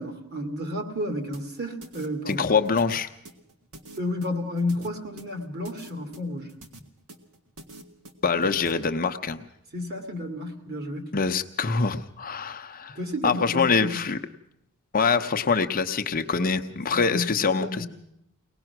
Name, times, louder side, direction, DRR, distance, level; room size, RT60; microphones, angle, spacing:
voice 1, 0.0-2.5 4.0-6.5 9.7-11.1 13.0-14.1 16.9-17.9, left 1 dB, 45° right, 5 dB, 2.4 m, -32 dB
sound 1, 1.3-8.7, right 2 dB, 70° right, 1.8 m, -46 dB
voice 2, 2.3-3.1 8.2-9.4 11.1-13.0 13.2-14.2 14.9-17.9, left 5 dB, 40° left, 7 dB, 0.8 m, -24 dB
23.0 x 18.5 x 6.0 m, 0.77 s
head